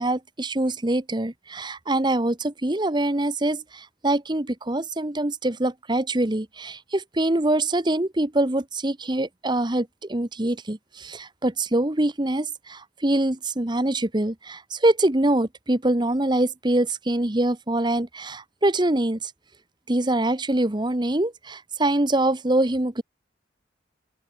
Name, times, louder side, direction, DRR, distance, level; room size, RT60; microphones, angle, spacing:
voice 1, 0.0-19.3 19.9-23.0, right 1 dB, 25° right, 1.1 m, -24 dB
open air
head